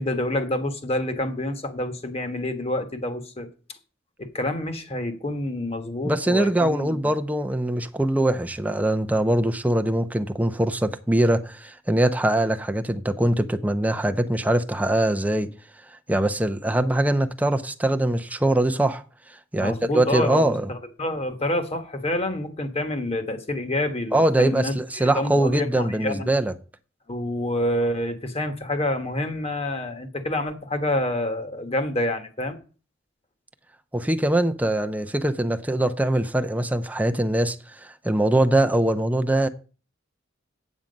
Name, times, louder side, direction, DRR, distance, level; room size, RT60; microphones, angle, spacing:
voice 1, 0.0-3.5 4.2-7.1 19.6-26.3 27.1-32.6, left 1 dB, 30° left, 1.3 m, -28 dB
voice 2, 6.0-15.5 16.1-19.0 19.5-20.7 24.1-26.5 33.9-37.6 37.8-39.5, right 1 dB, 10° right, 0.6 m, -22 dB
8.8 x 7.4 x 5.2 m
head